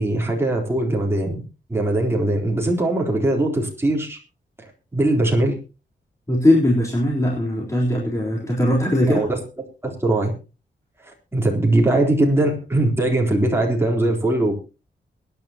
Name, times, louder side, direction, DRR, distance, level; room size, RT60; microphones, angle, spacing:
voice 1, 0.0-1.4 1.7-4.2 4.6-5.5 9.0-9.4 9.8-10.3 11.3-14.5, right 1 dB, 15° right, 0 dB, 3.8 m, -21 dB
voice 2, 6.3-9.2, left 1 dB, 15° left, -4 dB, 3.8 m, -19 dB
22.5 x 11.0 x 3.0 m, 0.32 s
wide cardioid pair, 160°, 18 cm